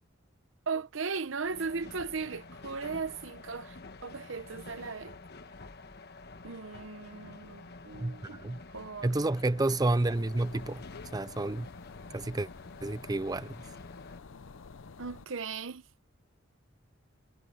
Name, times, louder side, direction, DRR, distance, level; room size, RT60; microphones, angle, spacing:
voice 1, 0.7-5.2 6.4-9.1 15.0-15.8, right 4 dB, 75° right, 0.9 m, -37 dB
sound 1, 1.4-14.2, left 3 dB, 55° left, 1.3 m, -49 dB
voice 2, 8.0-8.6 9.0-10.8 11.1-11.7 12.1-12.5 12.8-13.5, right 2 dB, 20° right, 0.5 m, -30 dB
sound 2, 9.8-15.3, left 4 dB, 75° left, 0.6 m, -49 dB
head